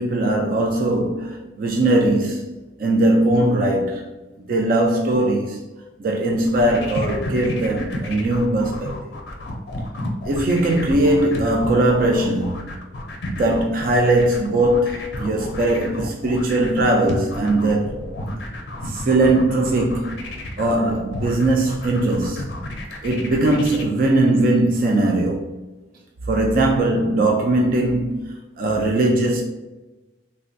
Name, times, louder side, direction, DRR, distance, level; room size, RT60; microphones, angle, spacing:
voice 1, 0.0-4.1 4.5-5.7 6.0-9.1 10.3-12.6 13.3-17.9 18.8-20.3 20.6-22.4 23.0-25.5 26.3-29.4, right 1 dB, 50° right, 0.3 m, -20 dB
sound 1, 6.4-23.8, left 1 dB, 65° left, 0.5 m, -32 dB
3.3 x 2.2 x 2.5 m
head